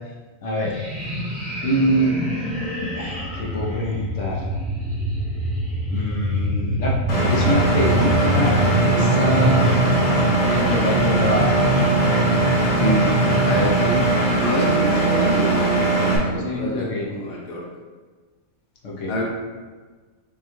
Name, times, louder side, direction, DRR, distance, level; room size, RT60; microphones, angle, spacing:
voice 1, 0.4-0.7 1.6-2.1 2.9-4.4 5.9-7.0 7.2-8.6 8.9-9.7 10.4-11.5 16.2-17.1 18.8-19.2, equal, 65° left, -2 dB, 0.9 m, -25 dB
sound 1, 0.6-14.1, equal, 75° right, 1.9 m, -25 dB
Engine, 7.1-16.2, right 2 dB, 40° left, 0.7 m, -20 dB
voice 2, 12.8-13.1 13.5-14.0 14.4-17.6 19.1-19.2, equal, 85° left, -2 dB, 1.3 m, -26 dB
5.2 x 2.3 x 2.9 m, 1.4 s
omnidirectional pair, 1.4 m